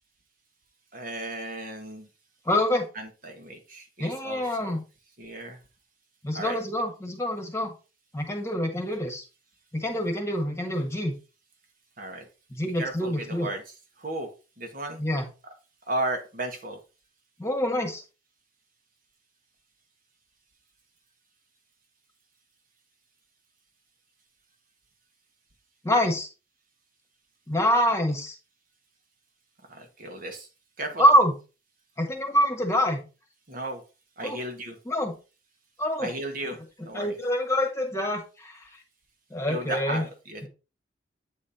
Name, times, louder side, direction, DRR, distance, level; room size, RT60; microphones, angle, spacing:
voice 1, 0.9-2.1 2.9-4.8 5.2-5.6 6.3-6.6 12.0-12.3 12.6-14.3 14.6-15.0 15.9-16.8 29.7-30.5 30.8-31.1 33.5-33.8 34.2-34.8 36.0-37.2 39.5-40.5, right 2 dB, 50° right, 4 dB, 1.4 m, -35 dB
voice 2, 2.4-2.9 4.0-4.8 6.2-7.7 8.1-9.2 9.7-11.1 12.5-13.5 15.0-15.2 17.4-18.0 25.8-26.3 27.5-28.3 31.0-31.3 32.0-33.0 34.2-34.4 34.9-35.2 35.8-36.1 36.9-38.6 39.3-40.0, equal, 15° left, 3 dB, 1.5 m, -25 dB
8.6 x 4.3 x 4.2 m, 0.31 s
head